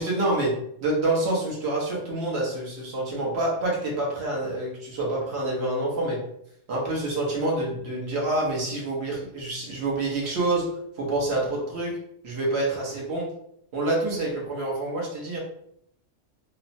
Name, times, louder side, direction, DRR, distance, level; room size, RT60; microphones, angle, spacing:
voice 1, 0.0-6.2 6.7-12.0 12.2-13.3 13.7-15.4, right 2 dB, 55° right, -3 dB, 1.1 m, -27 dB
3.0 x 2.0 x 2.5 m, 0.70 s
omnidirectional pair, 1.4 m